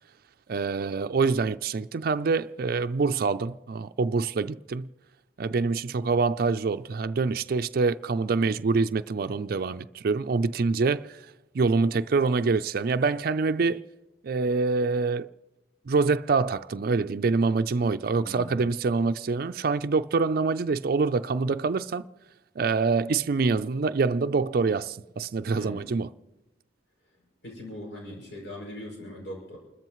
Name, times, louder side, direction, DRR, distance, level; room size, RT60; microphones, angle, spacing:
voice 1, 0.5-4.9 5.4-13.8 14.2-15.3 15.9-22.1 22.6-26.1, right 4 dB, 55° right, 0.4 m, -25 dB
voice 2, 18.2-18.7 25.5-25.9 27.0-29.6, left 1 dB, 80° left, 6.1 m, -41 dB
29.5 x 13.5 x 3.1 m
head